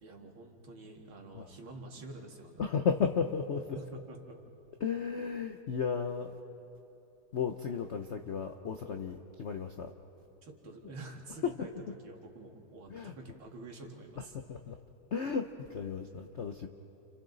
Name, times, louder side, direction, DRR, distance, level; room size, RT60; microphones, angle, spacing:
voice 1, 0.0-2.6 3.7-4.4 10.4-11.7 12.0-14.3, right 2 dB, 85° right, 1 dB, 2.8 m, -48 dB
voice 2, 2.6-3.8 4.8-6.4 7.3-9.9 11.4-11.7 12.9-13.1 14.2-14.8 15.1-16.7, left 6 dB, 65° left, 5 dB, 0.6 m, -34 dB
30.0 x 29.5 x 4.0 m, 3.0 s
omnidirectional pair, 2.2 m